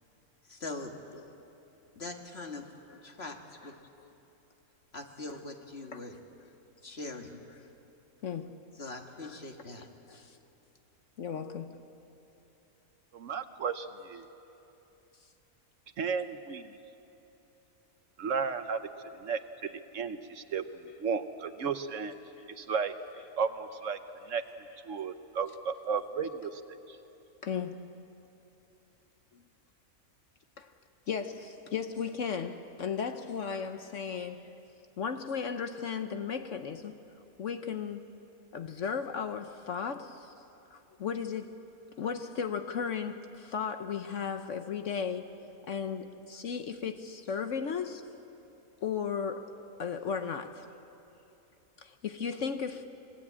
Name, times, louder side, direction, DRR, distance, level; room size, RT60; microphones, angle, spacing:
voice 1, 0.5-0.9 1.9-2.7 3.0-3.8 4.9-6.2 6.8-7.4 8.8-9.9, left 2 dB, 45° left, 2.0 m, -42 dB
voice 2, 8.2-8.6 9.2-9.4 10.1-10.4 11.2-11.8 16.2-16.3 19.1-19.2 19.6-19.8 20.9-21.0 22.4-22.5 24.2-24.3 24.7-24.8 25.7-25.8 26.2-26.4 27.4-27.8 29.3-29.4 30.6-30.7 31.1-34.5 35.0-37.0 37.4-38.0 38.5-40.3 40.7-41.7 42.0-45.3 45.7-48.1 48.8-49.5 49.8-50.7 51.8-52.8, left 6 dB, 60° left, 1.1 m, -36 dB
voice 3, 13.1-14.2 16.0-16.7 18.2-18.8 19.2-19.4 19.9-20.6 21.0-22.1 22.6-22.9 23.4-24.0 24.3-24.4 24.9-26.6, right 6 dB, 60° right, 1.1 m, -33 dB
25.5 x 19.5 x 8.7 m
omnidirectional pair, 1.5 m